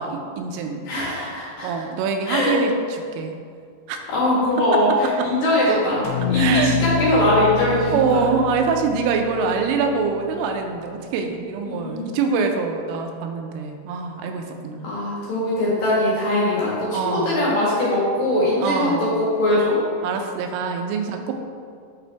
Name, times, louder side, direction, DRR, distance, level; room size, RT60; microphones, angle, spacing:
voice 1, 0.0-0.9 1.6-3.4 3.9-4.0 4.6-5.3 6.3-6.8 7.9-14.9 16.9-17.5 18.6-19.1 20.0-21.4, right 5 dB, 85° right, 4 dB, 3.2 m, -24 dB
voice 2, 0.9-1.7 2.3-2.6 4.1-8.2 11.6-12.1 14.8-18.9 19.2-19.8, left 1 dB, 60° left, -7 dB, 2.9 m, -21 dB
sound 1, 6.0-10.3, left 5 dB, 85° left, 2.9 m, -27 dB
8.7 x 6.0 x 3.4 m, 2.2 s
omnidirectional pair, 5.6 m